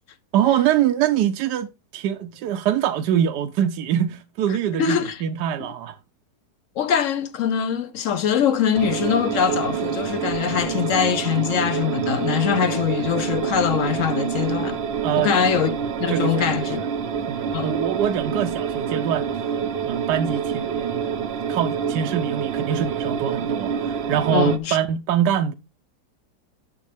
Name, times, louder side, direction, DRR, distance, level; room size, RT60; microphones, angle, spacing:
voice 1, 0.3-5.9 15.0-15.3 16.1-16.9 17.3-19.3 19.8-21.2 21.5-25.5, right 10 dB, 80° right, 1.2 m, -24 dB
voice 2, 4.8-5.2 6.8-14.8 15.2-15.7 16.0-16.8 17.5-17.7 24.3-24.8, left 8 dB, 65° left, 0.8 m, -22 dB
sound 1, 8.7-24.6, right 7 dB, 55° right, 0.7 m, -27 dB
8.3 x 6.8 x 3.3 m
omnidirectional pair, 1.8 m